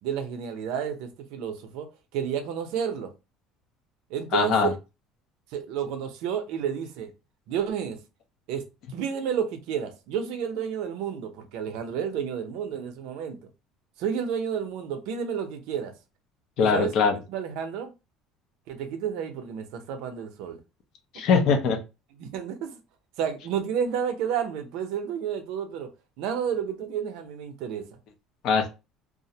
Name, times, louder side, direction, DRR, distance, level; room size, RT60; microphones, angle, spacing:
voice 1, 0.0-1.9 2.1-3.1 4.1-4.7 5.5-7.1 7.5-8.0 8.5-8.6 8.9-13.4 14.0-15.9 16.6-16.9 17.3-17.9 18.7-20.6 22.2-22.8 23.2-25.9 26.2-28.0, right 8 dB, 70° right, 0.5 m, -31 dB
voice 2, 4.3-4.7 16.6-17.2 21.1-21.8 28.4-28.7, left 5 dB, 55° left, 0.5 m, -21 dB
2.4 x 2.0 x 2.7 m
cardioid pair, 150°, 0 cm